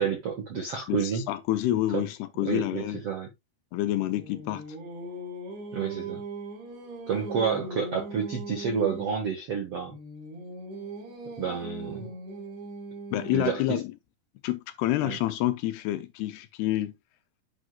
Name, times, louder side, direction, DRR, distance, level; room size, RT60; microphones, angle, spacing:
voice 1, 0.0-1.3 1.9-2.1 2.4-3.3 5.7-6.2 7.1-10.0 11.4-12.1 13.3-13.8 15.0-15.2, right 6 dB, 65° right, 1.4 m, -29 dB
voice 2, 0.9-3.0 3.7-4.7 13.1-13.9 14.4-16.9, left 15 dB, 80° left, 2.6 m, -28 dB
Singing, 3.8-9.3 9.9-13.7, right 2 dB, 90° right, 5.1 m, -40 dB
9.6 x 7.1 x 2.3 m
omnidirectional pair, 5.0 m